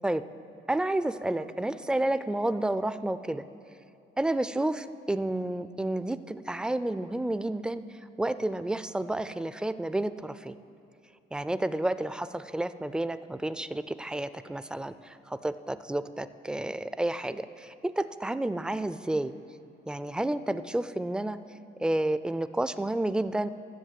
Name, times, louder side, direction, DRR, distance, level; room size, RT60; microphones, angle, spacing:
voice 1, 0.7-3.5 4.2-7.8 8.2-10.5 11.3-19.3 19.9-21.4 21.8-23.5, right 1 dB, 5° right, 13 dB, 0.3 m, -30 dB
13.0 x 7.4 x 7.5 m, 2.7 s
cardioid pair, 90°, 20 cm